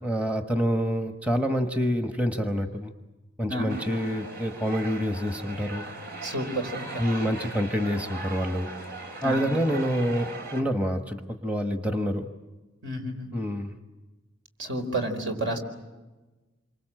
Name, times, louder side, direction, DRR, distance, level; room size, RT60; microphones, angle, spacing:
voice 1, 0.0-2.9 3.4-5.9 7.0-8.7 9.2-12.3 13.3-13.8, equal, 5° right, 5 dB, 1.2 m, -27 dB
sound 1, 3.7-10.6, right 2 dB, 50° right, 3.6 m, -39 dB
voice 2, 6.2-6.8 9.2-9.6 12.8-13.3 14.6-15.6, right 1 dB, 65° right, 5 dB, 4.5 m, -30 dB
27.5 x 25.0 x 7.7 m, 1.2 s
head